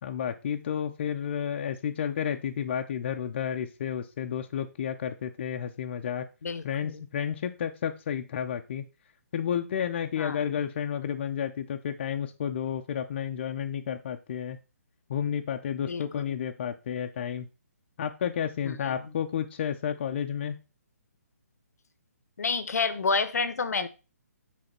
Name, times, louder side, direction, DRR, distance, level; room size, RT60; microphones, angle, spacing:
voice 1, 0.0-6.2 6.6-8.8 9.3-14.6 15.1-17.5 18.0-20.6, left 8 dB, 40° left, 0.6 m, -31 dB
voice 2, 6.4-7.0 10.2-10.5 15.9-16.4 18.6-18.8 22.4-23.9, left 4 dB, 70° left, 0.9 m, -29 dB
7.9 x 3.5 x 5.7 m
hypercardioid pair, 160°, 9 cm